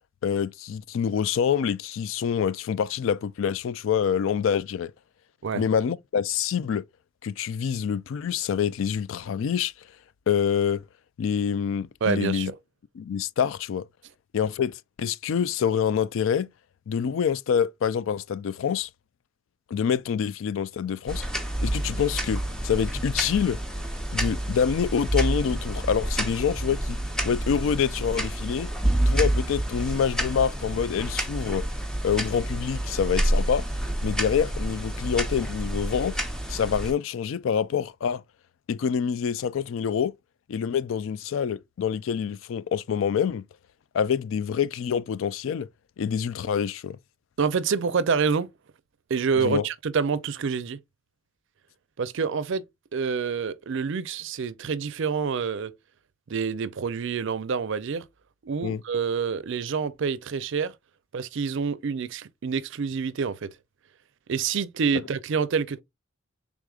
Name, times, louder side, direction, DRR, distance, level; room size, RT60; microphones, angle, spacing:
voice 1, 0.2-4.9 5.5-6.8 7.2-9.7 10.3-10.8 11.2-12.5 13.0-13.8 14.3-16.5 16.9-18.9 19.7-21.2 21.6-23.6 24.1-27.0 27.2-28.7 29.1-31.7 32.0-33.7 34.0-36.2 36.5-38.2 38.7-40.1 40.5-43.4 43.9-45.7 46.0-47.0 49.4-49.6 58.6-58.8, left 7 dB, 65° left, 0.3 m, -26 dB
voice 2, 12.0-12.5 47.4-48.5 49.1-50.8 52.0-52.6 52.9-55.7 56.3-58.1 58.4-60.7 61.1-63.5 64.3-65.8, right 5 dB, 65° right, 0.5 m, -27 dB
sound 1, 21.1-36.9, right 1 dB, 5° left, 0.7 m, -28 dB
4.9 x 3.6 x 2.3 m
head